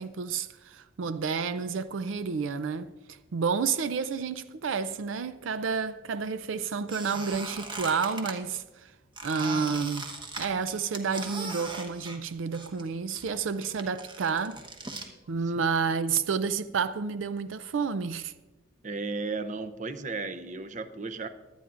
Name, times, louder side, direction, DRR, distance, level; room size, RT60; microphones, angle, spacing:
voice 1, 0.0-8.9 9.2-10.1 10.4-14.6 15.3-18.3, right 5 dB, 85° right, 0.5 m, -30 dB
Squeak, 6.9-8.4 9.2-12.9 13.1-15.1, right 2 dB, 25° right, 1.0 m, -39 dB
voice 2, 18.8-21.3, right 3 dB, 40° right, 0.6 m, -34 dB
22.5 x 9.3 x 2.5 m
head